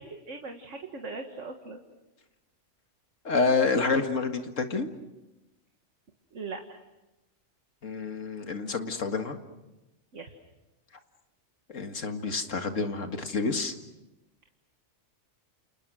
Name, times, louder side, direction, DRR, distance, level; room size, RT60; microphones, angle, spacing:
voice 1, 0.0-1.8 6.3-6.8 10.1-10.4, right 3 dB, 80° right, 4 dB, 2.1 m, -40 dB
voice 2, 3.2-4.9 7.8-9.4 11.7-13.7, left 4 dB, 90° left, 6 dB, 2.3 m, -28 dB
30.0 x 28.5 x 6.3 m, 1.0 s
omnidirectional pair, 1.3 m